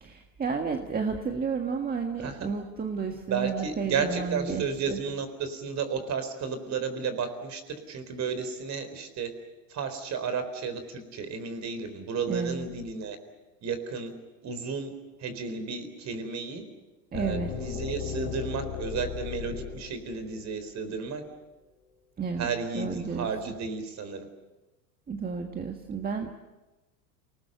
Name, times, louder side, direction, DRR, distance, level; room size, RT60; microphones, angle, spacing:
voice 1, 0.0-5.0 12.3-12.7 17.1-17.5 22.2-22.5 22.7-23.3 25.1-26.4, right 5 dB, 20° right, 4 dB, 1.7 m, -32 dB
voice 2, 2.2-2.5 3.3-9.3 9.7-13.2 13.6-14.1 14.4-14.9 15.2-16.6 17.1-21.2 22.4-24.3, right 5 dB, 35° right, 10 dB, 4.1 m, -33 dB
sound 1, 17.1-21.0, left 7 dB, 50° left, 5.5 m, -36 dB
28.0 x 19.5 x 8.0 m, 1.1 s
supercardioid pair, 120°, 47 cm